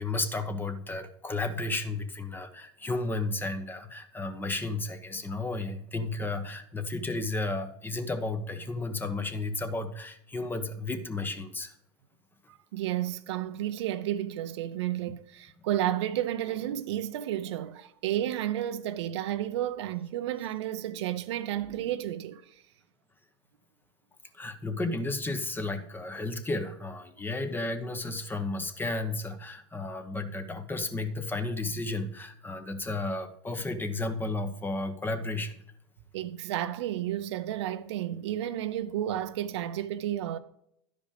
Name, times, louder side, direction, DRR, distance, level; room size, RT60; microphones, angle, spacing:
voice 1, 0.0-11.7 24.3-35.6, left 2 dB, 15° left, 1.0 m, -33 dB
voice 2, 12.5-22.5 36.1-40.4, right 12 dB, 75° right, 0.6 m, -32 dB
11.5 x 5.1 x 5.0 m
hypercardioid pair, 110°, 15 cm